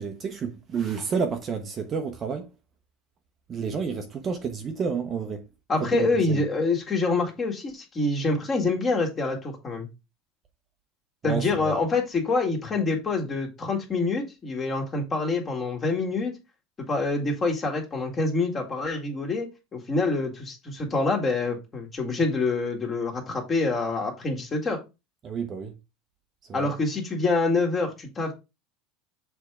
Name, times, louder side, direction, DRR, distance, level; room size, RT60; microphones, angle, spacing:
voice 1, 0.0-2.5 3.5-5.4 5.9-6.4 11.2-11.8 25.2-25.7 26.5-26.7, right 5 dB, 25° right, 0.8 m, -30 dB
voice 2, 5.7-9.9 11.2-16.3 16.9-24.8 26.5-28.3, left 3 dB, 20° left, 1.9 m, -26 dB
6.9 x 3.5 x 4.8 m
supercardioid pair, 150°, 0 cm